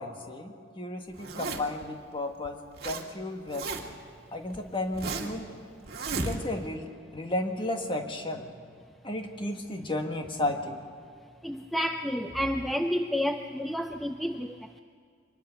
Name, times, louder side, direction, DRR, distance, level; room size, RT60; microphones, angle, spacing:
voice 1, 0.0-3.7 4.3-5.5 6.1-8.5 9.0-10.8, left 1 dB, 25° left, 4 dB, 1.5 m, -33 dB
Zipper (clothing), 1.1-1.8 2.4-3.0 3.3-4.1 4.5-5.4 5.9-6.7, right 3 dB, 50° right, 1.9 m, -34 dB
voice 2, 11.4-14.8, equal, ahead, 6 dB, 0.4 m, -30 dB
24.0 x 20.5 x 5.8 m, 2.2 s
head